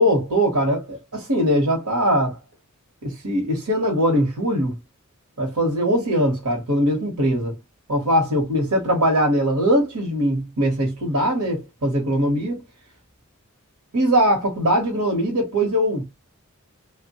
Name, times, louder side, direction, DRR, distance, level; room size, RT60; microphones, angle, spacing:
voice 1, 0.0-2.4 3.0-4.7 5.4-7.5 7.9-12.6 13.9-16.0, equal, 90° right, 0.9 m, -21 dB
2.9 x 2.1 x 2.7 m
head